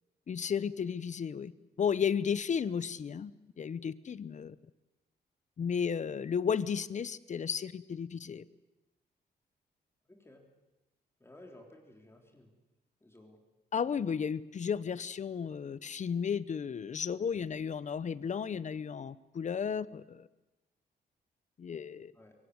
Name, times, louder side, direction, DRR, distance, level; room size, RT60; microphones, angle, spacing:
voice 1, 0.3-1.5 1.8-3.3 3.6-4.5 5.6-8.4 13.7-20.3 21.6-22.1, left 7 dB, 45° left, 17 dB, 0.8 m, -33 dB
voice 2, 10.1-10.4 11.2-12.5 13.0-13.4 22.1-22.3, left 1 dB, 15° left, 2 dB, 3.5 m, -55 dB
23.0 x 18.0 x 9.7 m, 1.0 s
cardioid pair, 110°, 17 cm